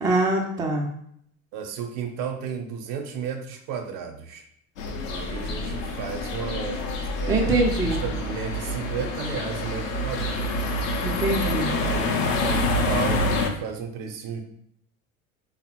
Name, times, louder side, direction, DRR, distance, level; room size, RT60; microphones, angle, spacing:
voice 1, 0.0-0.9 7.3-8.0 11.0-11.7, right 2 dB, 10° right, 0 dB, 0.4 m, -23 dB
voice 2, 1.5-4.4 5.1-10.6 11.6-14.4, right 7 dB, 55° right, 5 dB, 0.6 m, -34 dB
sound 1, 4.8-13.5, left 2 dB, 65° left, 0.6 m, -27 dB
3.4 x 2.1 x 2.8 m, 0.68 s
hypercardioid pair, 75°, 41 cm